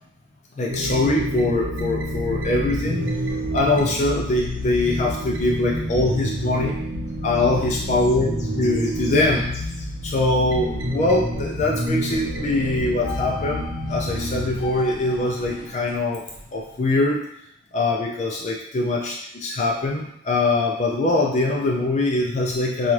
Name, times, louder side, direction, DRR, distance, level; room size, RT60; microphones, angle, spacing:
voice 1, 0.6-3.1 3.5-6.7 7.2-16.2 16.5-17.3 17.7-22.9, left 2 dB, 35° left, -1 dB, 0.3 m, -23 dB
sound 1, 0.7-14.7, equal, 70° right, 0.6 m, -28 dB
sound 2, 2.6-17.0, left 4 dB, 75° left, 0.6 m, -42 dB
4.1 x 2.3 x 3.1 m, 0.77 s
head